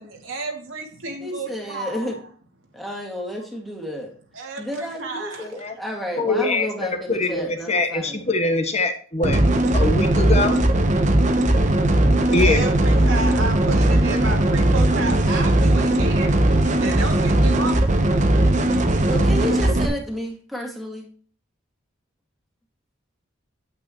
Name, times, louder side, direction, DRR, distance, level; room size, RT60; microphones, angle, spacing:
voice 1, 0.0-2.2 3.4-3.5 4.3-5.5 12.4-16.3 16.7-18.0, right 3 dB, 85° right, 1 dB, 2.5 m, -31 dB
voice 2, 1.2-2.1 2.7-4.1 4.6-8.2 12.9-13.0 19.0-21.1, equal, ahead, 0 dB, 2.0 m, -31 dB
voice 3, 6.2-9.4 9.7-10.6 12.3-12.6, left 2 dB, 35° left, 7 dB, 1.1 m, -23 dB
sound 1, 9.2-19.9, right 1 dB, 40° right, 1.0 m, -18 dB
8.7 x 8.7 x 3.0 m, 0.42 s
head